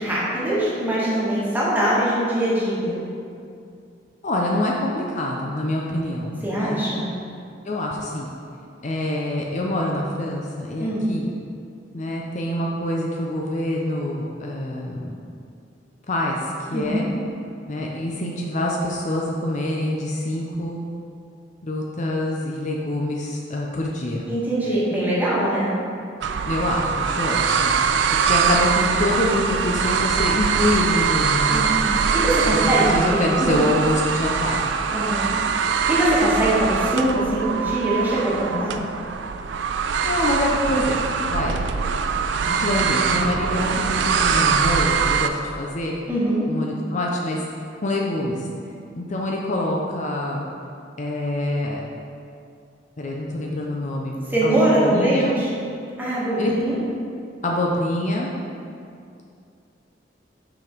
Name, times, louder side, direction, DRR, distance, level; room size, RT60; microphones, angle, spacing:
voice 1, 0.0-3.0 6.4-7.1 10.8-11.1 16.7-17.1 24.3-25.8 31.5-33.6 34.9-35.3 35.9-38.8 46.1-46.5 54.3-55.5 56.0-56.8, right 1 dB, 10° right, -8 dB, 1.6 m, -22 dB
voice 2, 4.2-6.8 7.6-8.3 8.8-11.3 11.9-15.2 16.1-17.1 17.7-20.8 21.6-24.2 26.4-27.8 28.1-31.7 32.5-34.6 40.0-41.0 41.3-41.6 42.5-45.9 46.5-47.4 47.8-48.5 48.9-50.5 51.0-51.8 53.0-55.4 56.4-56.5 57.4-58.3, left 1 dB, 40° left, -2 dB, 0.6 m, -25 dB
sound 1, 26.2-45.3, right 6 dB, 70° right, 0.3 m, -22 dB
6.1 x 5.1 x 4.5 m, 2.5 s
head